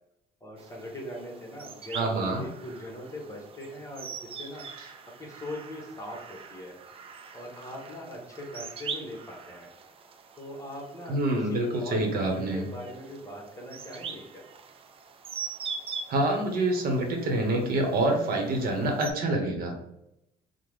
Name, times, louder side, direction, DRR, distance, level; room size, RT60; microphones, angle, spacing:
voice 1, 0.4-4.7 5.2-6.8 7.3-9.7 10.4-14.5, left 1 dB, 20° left, 0 dB, 0.9 m, -41 dB
sound 1, 0.6-19.1, right 6 dB, 35° right, 0.4 m, -43 dB
voice 2, 1.9-2.5 11.1-12.6 16.1-19.7, right 1 dB, 60° right, 2 dB, 0.8 m, -26 dB
3.5 x 2.1 x 3.1 m, 0.85 s
cardioid pair, 110°, 17 cm